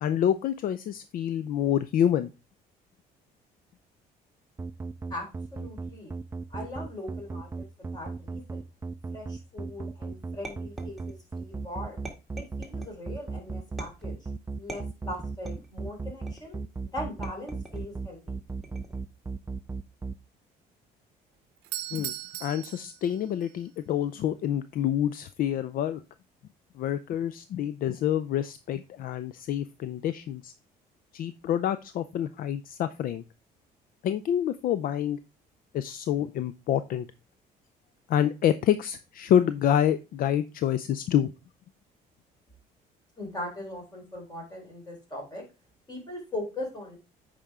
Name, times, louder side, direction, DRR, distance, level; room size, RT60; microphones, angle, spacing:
voice 1, 0.0-2.3 21.9-22.1 22.4-26.0 26.8-30.5 31.1-33.2 34.0-35.2 35.7-37.1 38.1-41.3, left 10 dB, 60° left, 13 dB, 0.5 m, -27 dB
sound 1, 4.6-20.1, right 4 dB, 15° right, 0.4 m, -35 dB
voice 2, 5.5-6.1 6.5-8.7 9.1-12.0 12.4-14.3 14.6-16.6 16.9-18.4 43.2-45.4 45.9-47.0, left 1 dB, 25° left, 1 dB, 3.8 m, -40 dB
sound 2, 10.4-11.4 12.0-13.0 13.8-14.2 14.7-15.7 16.3-16.7 17.2-17.9 18.6-19.1, right 1 dB, ahead, 2.0 m, -44 dB
Doorbell, 21.6-23.5, right 14 dB, 80° right, 0.7 m, -38 dB
8.6 x 5.1 x 3.6 m, 0.29 s
cardioid pair, 110°, 17 cm